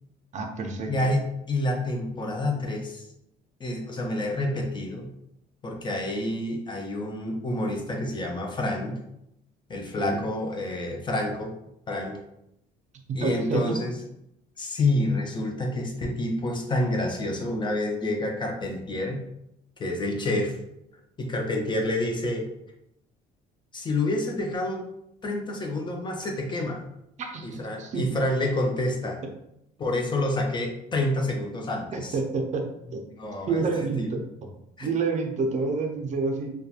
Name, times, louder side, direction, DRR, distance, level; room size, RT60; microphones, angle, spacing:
voice 1, 0.3-0.9 10.0-10.2 13.1-13.8 27.2-28.0 31.9-32.7 32.9-33.0 33.5-34.2 34.8-36.6, right 4 dB, 45° right, 3 dB, 0.5 m, -28 dB
voice 2, 0.9-3.1 3.6-5.1 5.6-9.0 9.7-11.5 11.9-12.2 13.1-14.0 14.6-19.2 19.8-20.6 21.2-22.5 23.7-24.8 25.2-26.8 27.4-29.2 29.8-32.2 33.1-33.7 34.0-34.1 34.8-34.9, left 1 dB, 25° left, 1 dB, 0.4 m, -28 dB
2.7 x 2.2 x 2.3 m, 0.81 s
cardioid pair, 110°, 17 cm